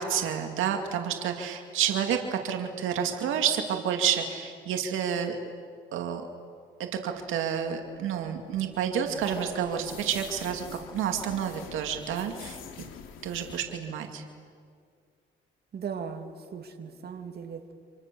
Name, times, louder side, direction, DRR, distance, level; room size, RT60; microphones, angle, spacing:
voice 1, 0.0-5.4 5.9-6.3 7.0-12.6 13.2-14.2, right 8 dB, 85° right, 4 dB, 2.4 m, -29 dB
sound 1, 7.9-13.6, left 8 dB, 90° left, 2.8 m, -46 dB
voice 2, 8.8-9.5 9.8-10.1 15.7-17.7, right 6 dB, 55° right, 4 dB, 2.6 m, -39 dB
30.0 x 27.5 x 6.9 m, 2.2 s
cardioid pair, 90°, 20 cm